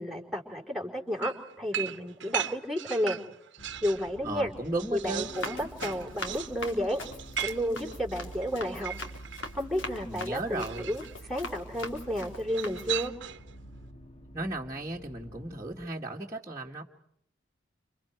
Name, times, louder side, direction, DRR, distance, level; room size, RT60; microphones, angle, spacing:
voice 1, 0.0-3.2 3.8-4.5 4.9-7.0 7.4-8.9 9.5-11.0 11.3-13.1, equal, ahead, 4 dB, 4.7 m, -32 dB
sound 1, 1.2-4.1 4.5-9.5 10.6-11.2 12.5-13.5, right 10 dB, 70° right, 1.1 m, -38 dB
sound 2, 3.6-15.9, right 1 dB, 30° left, 1.6 m, -48 dB
voice 2, 4.2-5.3 10.1-10.9 14.3-16.8, right 2 dB, 15° right, -3 dB, 2.1 m, -35 dB
Run, 5.2-13.1, left 2 dB, 90° left, 4.2 m, -42 dB
29.5 x 28.0 x 4.8 m, 0.71 s
head